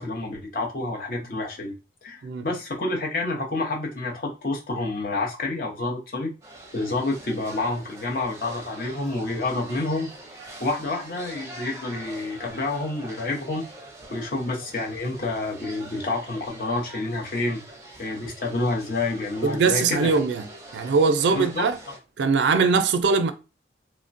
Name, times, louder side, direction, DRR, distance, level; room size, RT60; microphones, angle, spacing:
voice 1, 0.0-1.7 2.0-6.3 6.7-10.1 10.6-13.7 14.1-17.6 18.0-20.2 21.3-21.9, left 2 dB, 50° left, 0.7 m, -28 dB
sound 1, 6.4-22.0, right 1 dB, 15° right, 0.5 m, -44 dB
voice 2, 19.4-20.5 20.7-21.8 22.2-23.3, right 4 dB, 75° right, 0.4 m, -21 dB
3.0 x 2.1 x 2.5 m
head